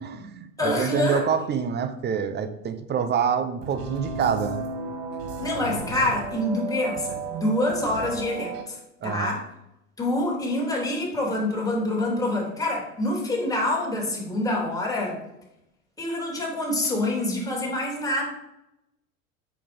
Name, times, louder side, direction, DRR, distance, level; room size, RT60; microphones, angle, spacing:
voice 1, 0.0-4.7 9.0-9.3, right 7 dB, 25° right, 11 dB, 0.9 m, -26 dB
voice 2, 0.6-1.2 5.4-9.4 10.0-15.2 16.0-18.3, left 1 dB, 10° left, -3 dB, 3.6 m, -26 dB
sound 1, 3.6-8.6, right 4 dB, 50° right, 1.7 m, -33 dB
8.4 x 6.3 x 5.3 m, 0.86 s
hypercardioid pair, 85°, 44 cm